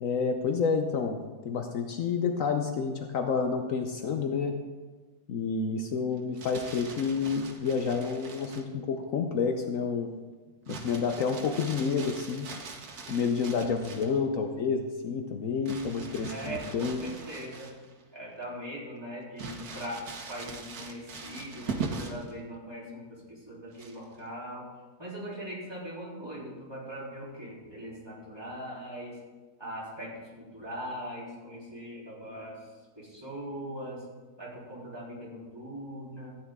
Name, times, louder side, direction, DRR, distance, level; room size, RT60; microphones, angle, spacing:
voice 1, 0.0-1.2 1.4-4.6 5.3-10.1 10.7-12.5 13.1-17.0, left 5 dB, 65° left, 5 dB, 1.1 m, -29 dB
Crumpling crinkling, 6.2-8.7 10.7-14.2 15.7-18.0 18.4-18.5 19.4-22.3 23.7-24.2, right 4 dB, 90° right, 1.6 m, -41 dB
voice 2, 16.3-17.7 18.1-24.7 25.0-29.2 29.6-32.7 33.0-34.1 34.4-36.3, equal, 15° right, -6 dB, 3.5 m, -40 dB
14.5 x 9.6 x 3.6 m, 1.3 s
omnidirectional pair, 1.5 m